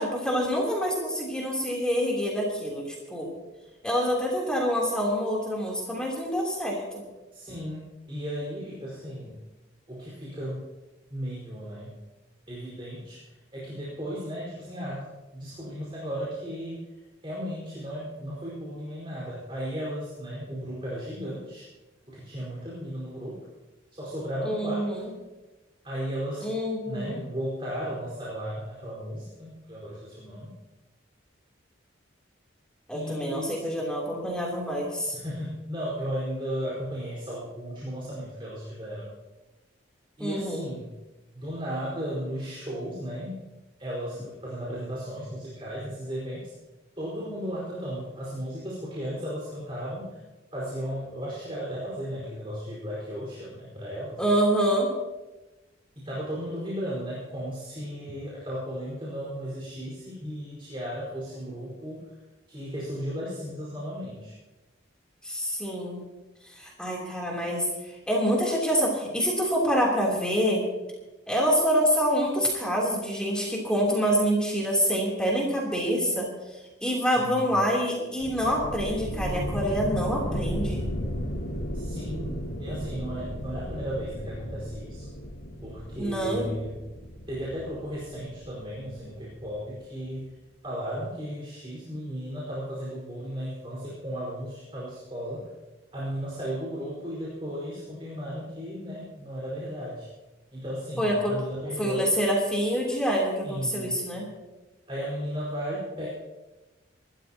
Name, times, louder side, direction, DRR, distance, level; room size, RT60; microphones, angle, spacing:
voice 1, 0.0-3.3 3.8-6.8 24.4-25.1 26.4-27.2 32.9-35.2 40.2-40.7 54.2-54.9 65.2-66.1 66.5-70.6 71.3-76.3 76.8-80.9 85.9-86.5 101.0-101.4 101.8-104.3, equal, 5° left, -3 dB, 3.2 m, -26 dB
voice 2, 7.3-9.4 9.9-10.7 11.1-11.9 12.5-15.1 15.3-16.9 17.2-21.7 22.1-23.5 23.9-25.0 25.8-30.5 32.9-33.6 35.1-39.1 40.2-40.9 41.3-43.4 43.8-46.5 47.0-50.2 50.5-54.2 55.9-62.1 62.5-64.3 77.0-77.5 81.7-85.1 85.6-86.8 87.3-90.3 90.6-95.5 95.9-100.1 100.5-102.1 103.4-104.0 104.9-106.1, equal, 25° right, -6 dB, 4.7 m, -35 dB
sound 1, 78.2-89.7, equal, 85° left, 2.9 m, -35 dB
26.0 x 13.5 x 2.9 m, 1.1 s
head